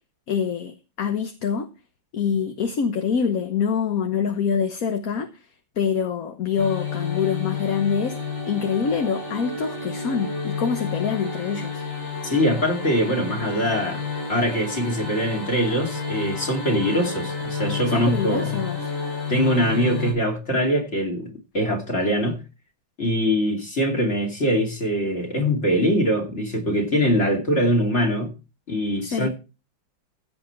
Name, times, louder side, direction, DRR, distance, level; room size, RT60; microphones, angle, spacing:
voice 1, 0.3-1.7 2.1-5.3 5.8-8.2 8.5-11.8 17.9-18.9 29.0-29.3, left 6 dB, 50° left, 1.4 m, -25 dB
sound 1, 6.6-20.1, left 5 dB, 75° left, 8.6 m, -30 dB
voice 2, 12.2-18.6 19.3-22.4 23.0-28.3 28.7-29.3, equal, 35° left, 3.0 m, -23 dB
16.0 x 7.8 x 4.5 m
omnidirectional pair, 2.1 m